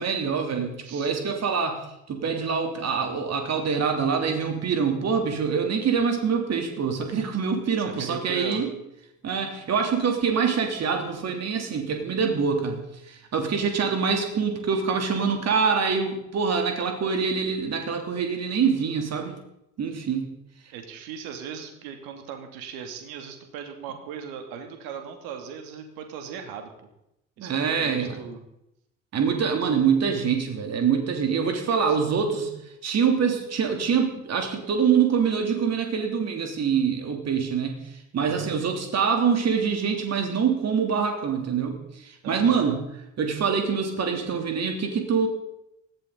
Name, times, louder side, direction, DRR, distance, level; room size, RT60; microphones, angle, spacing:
voice 1, 0.0-8.7 9.2-19.3 19.8-20.3 27.4-28.2 29.1-32.5 32.8-37.8 38.1-42.8 43.2-45.3, right 6 dB, 40° right, 4 dB, 3.3 m, -25 dB
voice 2, 7.8-8.7 20.7-26.9 27.4-28.4 38.2-38.5 42.2-42.6, right 7 dB, 60° right, 5 dB, 2.9 m, -38 dB
20.0 x 15.5 x 4.1 m, 0.82 s
figure-of-eight pair, 55°, 39 cm